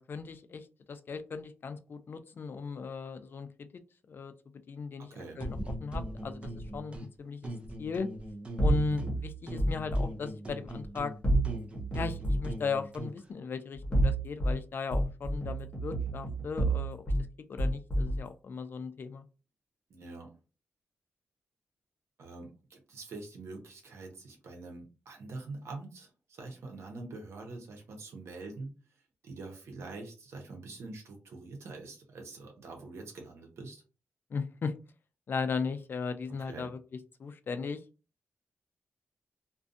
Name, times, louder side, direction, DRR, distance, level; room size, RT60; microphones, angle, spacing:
voice 1, 0.0-3.7 4.1-4.3 4.7-5.1 5.4-7.5 7.8-8.1 8.6-11.1 11.9-17.0 17.5-19.2 34.3-34.7 35.3-36.8 37.2-37.8, left 5 dB, 50° left, 10 dB, 0.3 m, -37 dB
voice 2, 5.0-5.4 19.9-20.3 22.2-28.7 29.2-33.8 36.4-36.7, right 3 dB, 85° right, 2 dB, 0.8 m, -45 dB
sound 1, 5.4-7.1 7.4-9.2 9.5-13.2, right 1 dB, 25° right, 0.5 m, -41 dB
sound 2, 8.6-10.1 11.2-12.6 13.7-14.6 14.9-17.2 17.6-18.2, right 1 dB, 25° left, 0.9 m, -29 dB
2.4 x 2.3 x 2.5 m, 0.33 s
wide cardioid pair, 130°, 5 cm